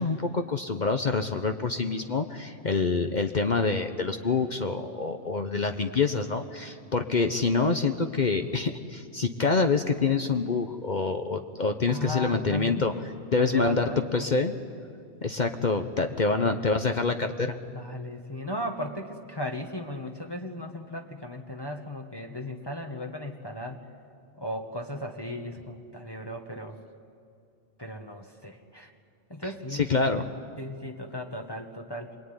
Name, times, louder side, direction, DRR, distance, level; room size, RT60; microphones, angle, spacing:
voice 1, 0.0-12.9 13.3-13.9 14.1-14.5 15.2-17.6 29.9-30.3, left 4 dB, 45° left, 6 dB, 1.0 m, -26 dB
voice 2, 11.9-13.0 13.3-14.3 16.1-16.7 17.7-23.8 24.3-26.8 27.8-28.9 29.3-29.9 30.6-32.2, equal, 20° left, 2 dB, 1.4 m, -36 dB
26.0 x 21.5 x 9.7 m, 2.4 s
omnidirectional pair, 1.2 m